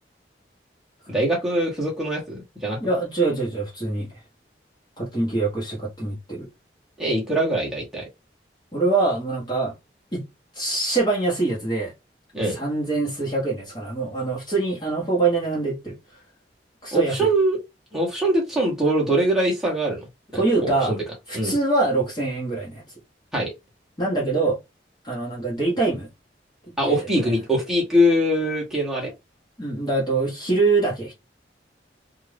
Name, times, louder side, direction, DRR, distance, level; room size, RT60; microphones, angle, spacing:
voice 1, 1.1-2.8 7.0-8.0 12.3-12.6 16.9-17.6 17.9-20.0 20.3-21.0 21.3-21.5 23.3-23.5 26.8-29.1, right 1 dB, ahead, 1.0 m, -22 dB
voice 2, 2.8-4.1 5.0-6.5 8.7-9.7 10.1-10.2 10.5-11.9 12.5-16.0 16.8-17.3 20.3-20.9 21.3-22.8 24.0-24.6 25.0-26.1 26.8-27.3 29.6-31.1, right 3 dB, 25° left, 1.1 m, -24 dB
2.6 x 2.4 x 3.3 m
head